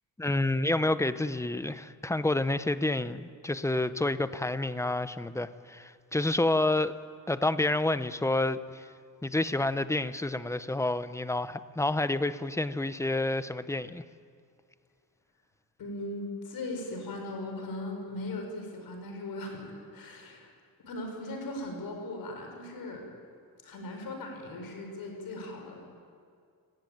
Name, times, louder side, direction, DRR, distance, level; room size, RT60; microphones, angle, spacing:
voice 1, 0.2-6.9 7.3-8.9 9.2-14.0, left 2 dB, 10° left, 12 dB, 0.6 m, -29 dB
voice 2, 15.8-20.5 20.8-23.0 23.6-25.9, left 1 dB, 65° left, 3 dB, 5.5 m, -38 dB
29.0 x 18.5 x 9.3 m, 2.2 s
wide cardioid pair, 165°, 38 cm